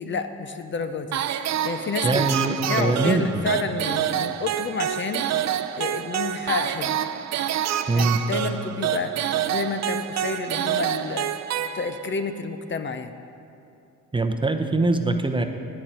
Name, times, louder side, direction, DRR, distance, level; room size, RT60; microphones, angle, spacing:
voice 1, 0.0-2.3 2.7-5.3 5.8-7.0 7.9-13.1, left 5 dB, 40° left, 8 dB, 0.6 m, -30 dB
sound 1, 1.1-12.2, right 10 dB, 65° right, 0.5 m, -27 dB
voice 2, 2.0-3.5 7.9-8.2 14.1-15.4, right 2 dB, 15° right, 6 dB, 0.7 m, -23 dB
9.5 x 6.9 x 8.8 m, 2.7 s
cardioid pair, 90°, 30 cm